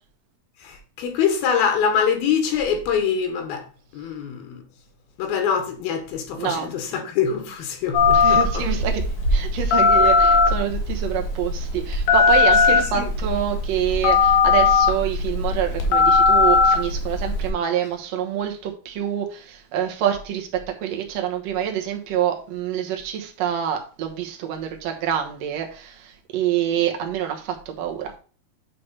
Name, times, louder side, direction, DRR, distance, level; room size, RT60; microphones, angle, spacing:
voice 1, 0.6-3.7 3.9-4.6 5.2-8.7 12.7-13.1, left 7 dB, 85° left, 3.2 m, -24 dB
voice 2, 6.4-6.7 8.1-9.0 9.3-28.1, right 10 dB, 65° right, 1.8 m, -26 dB
Telephone, 7.9-17.5, left 4 dB, 70° left, 3.0 m, -19 dB
8.5 x 3.4 x 5.4 m
omnidirectional pair, 4.3 m